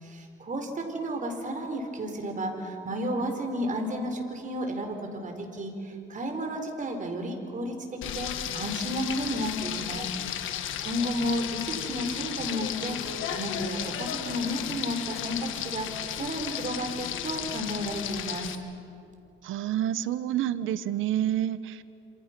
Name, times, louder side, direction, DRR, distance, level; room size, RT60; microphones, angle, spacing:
voice 1, 0.0-10.1 10.8-15.9 16.2-18.5, equal, 40° right, 4 dB, 4.3 m, -32 dB
Frying (food), 8.0-18.6, left 10 dB, 80° left, 1.5 m, -34 dB
voice 2, 19.4-21.8, right 11 dB, 85° right, 14 dB, 1.0 m, -28 dB
27.5 x 27.0 x 6.0 m, 2.6 s
cardioid pair, 90°, 20 cm